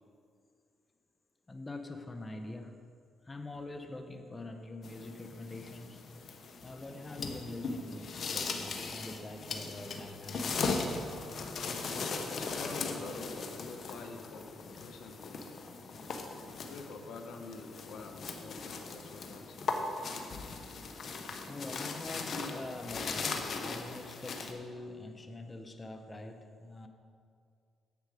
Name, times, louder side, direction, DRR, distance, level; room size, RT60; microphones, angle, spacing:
voice 1, 1.5-3.0 3.2-11.0 21.4-26.9, left 2 dB, 20° left, 5 dB, 0.9 m, -44 dB
sound 1, 4.8-24.5, left 4 dB, 55° left, 1.1 m, -39 dB
voice 2, 11.9-14.5 14.8-15.4 16.5-19.7, left 4 dB, 75° left, 5 dB, 1.0 m, -47 dB
10.5 x 8.1 x 4.9 m, 2.3 s
cardioid pair, 90°, 0 cm